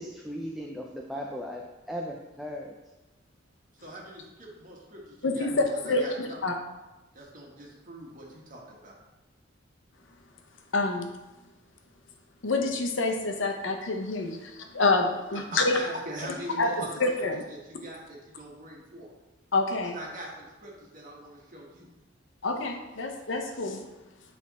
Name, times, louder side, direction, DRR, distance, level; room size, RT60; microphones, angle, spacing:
voice 1, 0.0-1.6 1.9-2.7, equal, ahead, -1 dB, 0.4 m, -37 dB
voice 2, 3.8-6.4 7.1-8.9 15.5-19.1 19.9-21.9, right 1 dB, 45° right, -2 dB, 1.5 m, -42 dB
voice 3, 5.2-6.5 10.7-11.1 12.4-15.8 16.6-16.7 17.0-17.4 19.5-20.0 22.4-23.8, left 3 dB, 75° left, 4 dB, 0.8 m, -27 dB
8.5 x 3.5 x 4.1 m, 1.1 s
head